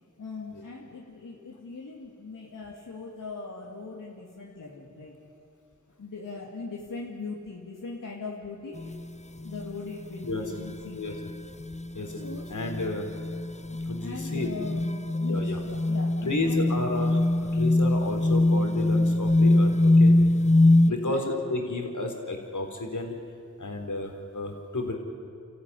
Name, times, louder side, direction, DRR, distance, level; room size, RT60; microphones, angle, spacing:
voice 1, 0.2-5.2 6.0-8.9 9.4-11.0 12.1-12.6 14.0-16.8 20.8-21.2, left 4 dB, 85° left, -3 dB, 2.5 m, -40 dB
sound 1, 8.8-9.0 9.4-9.7 10.2-10.3 10.6-10.7 11.1-20.9, left 2 dB, 20° left, 0.9 m, -23 dB
voice 2, 12.5-13.1 13.9-14.5 15.3-15.6 16.2-20.1 20.8-23.1 23.6-25.0, left 2 dB, 70° left, 3 dB, 3.8 m, -31 dB
29.5 x 14.5 x 9.8 m, 2.6 s
cardioid pair, 40°, 31 cm